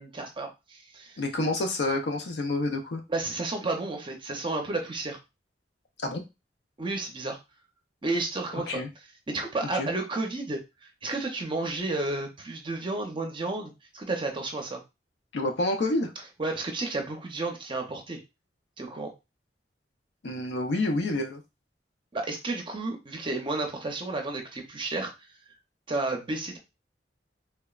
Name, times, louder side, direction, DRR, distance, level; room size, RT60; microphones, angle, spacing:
voice 1, 0.0-1.2 3.1-5.2 6.8-7.4 8.0-8.8 9.3-10.6 11.0-14.8 16.4-18.2 18.8-19.1 22.1-25.1 25.9-26.6, right 2 dB, 30° right, 3 dB, 0.5 m, -32 dB
voice 2, 1.2-3.0 6.0-6.2 8.5-8.9 9.7-9.9 15.3-16.1 20.2-21.4, left 2 dB, 75° left, 5 dB, 0.6 m, -28 dB
3.3 x 2.0 x 2.3 m, 0.25 s
head